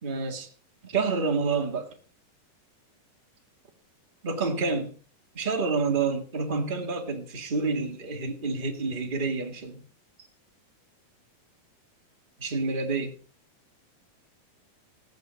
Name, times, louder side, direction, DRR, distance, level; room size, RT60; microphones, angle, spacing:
voice 1, 0.0-0.5 0.8-1.9 4.2-4.9 5.3-9.8 12.4-13.1, right 4 dB, 25° right, 1.2 m, -28 dB
16.5 x 8.6 x 5.3 m
omnidirectional pair, 4.2 m